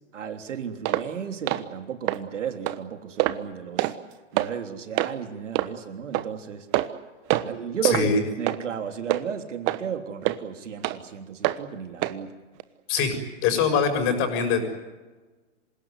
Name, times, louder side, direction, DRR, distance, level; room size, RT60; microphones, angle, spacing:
voice 1, 0.1-3.9 4.3-6.7 7.4-8.1 8.4-12.3, right 8 dB, 75° right, 6 dB, 3.4 m, -33 dB
sound 1, 0.9-1.1 1.5-1.6 2.1-2.2 2.7-2.8 3.2-3.4 3.8-4.0 4.4-4.5 5.0-5.1 5.6-5.7 6.1-6.3 6.7-7.0 7.3-7.5 7.8-8.0 8.5-8.6 9.1-9.2 9.7-9.8 10.2-10.4 10.8-11.0 11.4-11.6 12.0-12.2 12.6-12.7, right 17 dB, 30° right, 1.2 m, -24 dB
voice 2, 7.8-8.2 12.9-13.2 13.4-14.7, left 6 dB, 35° left, 5 dB, 6.6 m, -23 dB
27.0 x 18.0 x 9.6 m, 1.2 s
hypercardioid pair, 130°, 37 cm